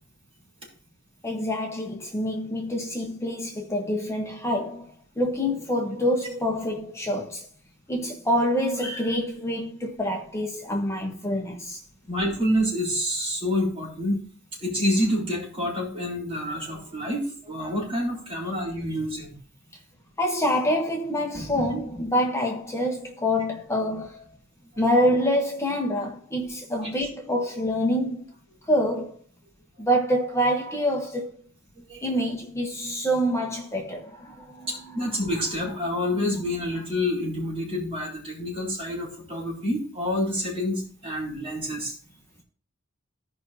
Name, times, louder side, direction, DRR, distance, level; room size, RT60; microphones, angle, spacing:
voice 1, 1.2-7.5 7.9-11.8 20.2-24.3 24.8-28.3 28.7-29.2 29.8-31.3 32.0-35.0, equal, 15° left, 1.1 m, -26 dB
voice 2, 12.1-14.2 14.6-19.4 26.8-26.9 31.8-32.0 34.6-41.9, left 1 dB, 30° right, 4.0 m, -28 dB
16.0 x 5.3 x 2.8 m
head